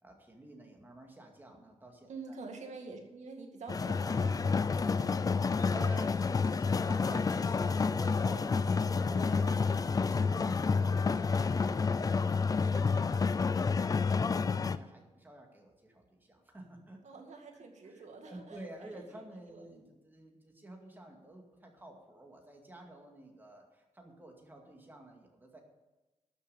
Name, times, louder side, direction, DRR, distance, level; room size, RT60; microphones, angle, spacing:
voice 1, 0.0-2.1 5.7-17.0 17.8-25.6, right 1 dB, 15° right, 1 dB, 2.2 m, -50 dB
voice 2, 2.1-5.9 17.0-19.9, right 4 dB, 75° right, 3 dB, 2.2 m, -48 dB
sound 1, 3.7-14.8, left 5 dB, 30° left, 0.4 m, -29 dB
12.5 x 6.9 x 8.7 m, 1.1 s
wide cardioid pair, 160°, 12 cm